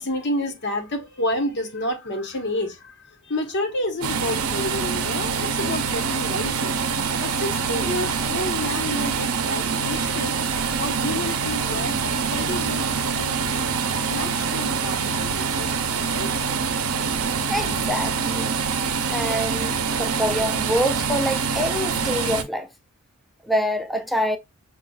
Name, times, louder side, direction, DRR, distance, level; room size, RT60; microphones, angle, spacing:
voice 1, 0.0-2.9 3.2-6.8 7.1-10.4 10.8-13.6 14.1-15.7 16.0-16.5, left 1 dB, 55° left, 1.0 m, -30 dB
sound 1, 4.0-22.4, right 5 dB, 75° right, 0.6 m, -25 dB
voice 2, 17.5-18.6 19.1-22.7 23.4-24.4, equal, ahead, 0.3 m, -26 dB
6.7 x 2.3 x 2.3 m
head